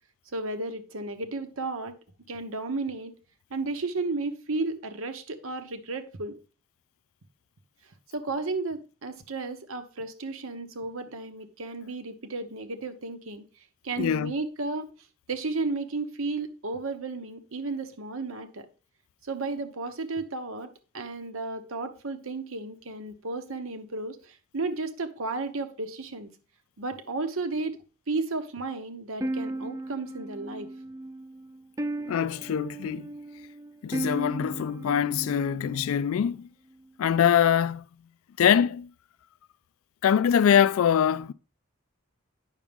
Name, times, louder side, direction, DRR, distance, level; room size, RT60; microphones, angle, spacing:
voice 1, 0.3-2.0 2.3-3.2 3.5-6.4 8.1-13.4 13.8-14.9 15.3-18.7 19.2-26.3 26.8-27.8 28.1-30.7, right 3 dB, 80° right, 1.0 m, -33 dB
voice 2, 14.0-14.3 32.1-33.0 33.8-36.5 37.0-37.9 38.4-38.9 40.0-41.3, left 8 dB, 80° left, 0.3 m, -23 dB
sound 1, 29.2-36.3, right 1 dB, 15° right, 0.3 m, -36 dB
9.1 x 6.1 x 3.5 m
head